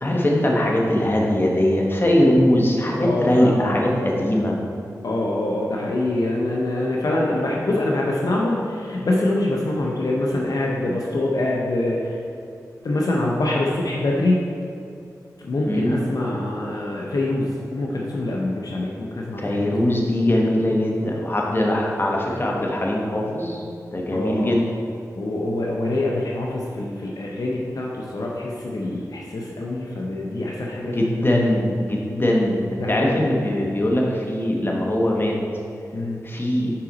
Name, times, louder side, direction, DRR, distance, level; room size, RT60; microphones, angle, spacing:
voice 1, 0.0-4.5 15.6-16.0 19.4-23.6 23.9-24.6 30.9-35.4 36.2-36.7, left 1 dB, 35° left, -2 dB, 1.0 m, -21 dB
voice 2, 3.0-3.7 5.0-12.2 12.8-14.4 15.4-19.7 24.1-24.5 25.2-31.1 32.8-33.2 35.9-36.2, left 2 dB, 65° left, -3 dB, 0.7 m, -25 dB
5.7 x 5.0 x 4.0 m, 2.4 s
cardioid pair, 50°, 7 cm